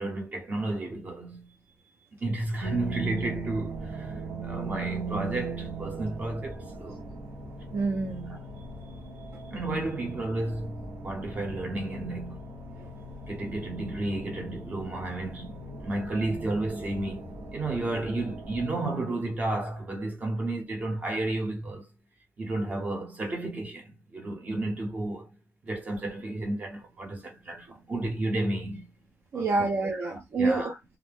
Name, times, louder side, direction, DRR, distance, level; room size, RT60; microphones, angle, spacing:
voice 1, 0.0-1.5 2.2-7.0 9.5-12.4 13.2-21.9 22.4-25.4 25.6-28.9 29.3-29.7 30.4-30.7, right 2 dB, 35° right, 0.8 m, -32 dB
sound 1, 2.6-18.7, right 3 dB, 85° right, 1.0 m, -39 dB
voice 2, 7.7-8.4 12.8-12.9 29.3-31.0, right 3 dB, 65° right, 0.6 m, -28 dB
2.4 x 2.1 x 3.4 m
wide cardioid pair, 165°, 5 cm